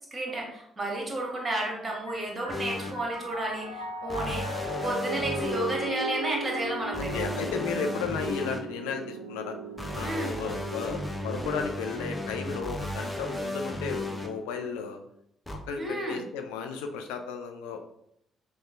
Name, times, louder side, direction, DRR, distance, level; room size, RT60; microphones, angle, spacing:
voice 1, 0.1-4.5 4.8-7.3 10.0-10.3 15.8-16.2, right 1 dB, 25° right, -1 dB, 1.2 m, -32 dB
Piano, 2.1-11.5, right 2 dB, 90° right, 0.3 m, -38 dB
sound 1, 2.5-2.9 4.1-5.7 6.9-8.6 9.8-14.3 15.5-15.6, left 1 dB, 10° left, 0.6 m, -34 dB
voice 2, 6.9-9.6 9.9-15.0 15.7-17.8, left 5 dB, 65° left, 4 dB, 0.3 m, -34 dB
5.1 x 2.0 x 2.5 m, 0.74 s
figure-of-eight pair, 45°, 0 cm